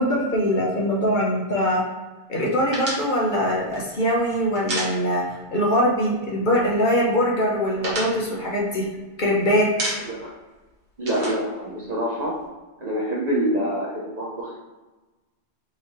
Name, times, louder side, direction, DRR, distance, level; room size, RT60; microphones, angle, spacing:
voice 1, 0.0-1.8 2.3-5.2 5.5-8.8 9.2-9.7, equal, 50° left, -4 dB, 0.9 m, -22 dB
sound 1, 2.7-5.5 5.8-5.9 6.2-6.9 7.3-9.3 9.6-10.3 10.6-12.4, right 1 dB, 80° right, 1.4 m, -32 dB
voice 2, 11.0-12.3 12.8-14.6, right 1 dB, 40° right, -5 dB, 0.8 m, -26 dB
4.0 x 2.8 x 3.1 m, 1.2 s
omnidirectional pair, 1.1 m